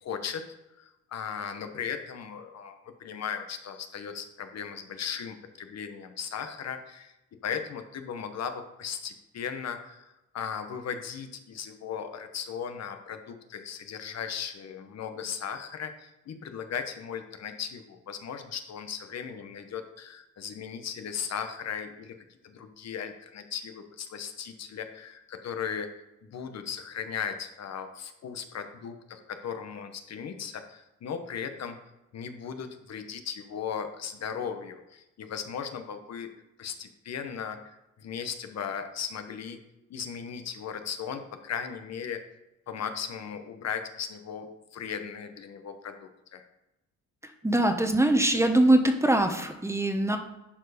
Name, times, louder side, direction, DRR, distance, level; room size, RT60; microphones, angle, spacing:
voice 1, 0.0-7.1 7.4-22.2 22.4-25.9 26.2-31.8 32.1-36.3 36.6-39.6 39.9-42.2 42.7-46.5, left 7 dB, 60° left, 7 dB, 1.1 m, -37 dB
voice 2, 47.4-50.2, right 1 dB, 10° right, 6 dB, 1.1 m, -22 dB
11.0 x 4.6 x 5.1 m, 0.94 s
cardioid pair, 90°, 30 cm